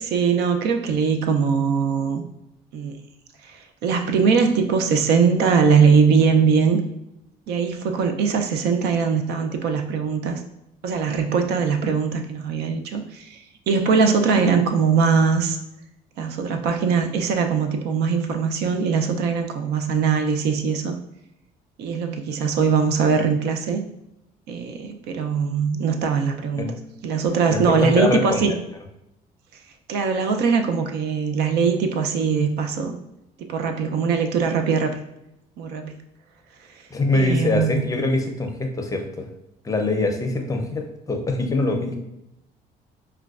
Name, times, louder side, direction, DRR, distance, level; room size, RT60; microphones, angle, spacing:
voice 1, 0.0-2.3 2.7-3.0 3.4-6.8 7.5-10.4 10.8-15.6 16.2-21.0 21.8-23.8 24.5-26.7 27.0-28.5 29.9-32.9 33.4-35.0 35.6-36.0 36.7-36.8 37.1-37.8, right 5 dB, 75° right, 5 dB, 0.5 m, -21 dB
voice 2, 27.5-28.6 36.9-39.3 39.6-42.0, left 2 dB, 20° left, 3 dB, 0.5 m, -23 dB
4.8 x 2.2 x 2.4 m, 0.86 s
cardioid pair, 110°, 17 cm